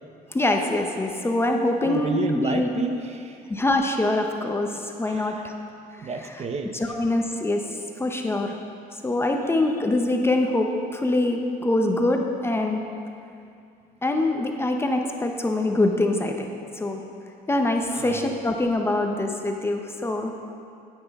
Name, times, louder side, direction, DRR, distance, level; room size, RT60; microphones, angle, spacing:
voice 1, 0.3-2.7 3.5-5.5 6.9-7.6 8.0-8.6 8.9-12.8 14.0-16.5 16.8-17.0 17.5-20.3, left 2 dB, 15° left, 3 dB, 0.7 m, -24 dB
voice 2, 1.8-3.4 5.1-5.5 6.0-6.8 17.9-18.3, right 4 dB, 40° right, 5 dB, 0.6 m, -31 dB
9.2 x 9.0 x 3.6 m, 2.4 s
cardioid pair, 110°, 17 cm